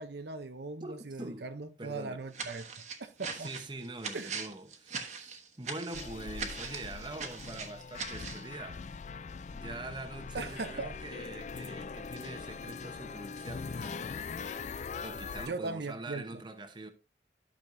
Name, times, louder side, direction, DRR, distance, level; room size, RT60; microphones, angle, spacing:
voice 1, 0.0-2.7 3.0-3.5 4.1-4.4 10.3-10.9 15.4-16.4, right 3 dB, 70° right, 0.8 m, -39 dB
voice 2, 0.8-1.4 1.8-2.2 3.3-8.8 9.5-13.9 14.9-16.9, right 2 dB, 25° right, 0.9 m, -44 dB
sound 1, 2.3-8.5, right 5 dB, 40° right, 1.2 m, -41 dB
sound 2, 5.9-15.5, left 5 dB, 40° left, 0.3 m, -42 dB
12.0 x 6.4 x 2.6 m
head